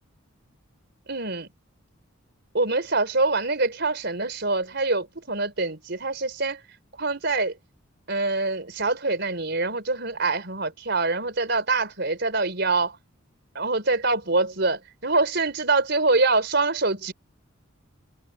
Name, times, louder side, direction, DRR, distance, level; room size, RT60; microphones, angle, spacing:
voice 1, 1.1-1.5 2.5-6.6 7.0-7.5 8.1-13.0 13.5-17.1, right 3 dB, 55° right, 4.5 m, -25 dB
head